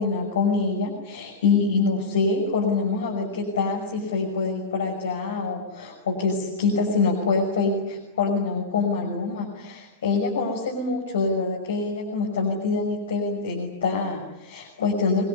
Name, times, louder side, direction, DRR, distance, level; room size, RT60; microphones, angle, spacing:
voice 1, 0.0-15.2, left 4 dB, 65° left, 0 dB, 6.1 m, -25 dB
27.0 x 22.0 x 9.6 m, 0.93 s
figure-of-eight pair, 90°, 0 cm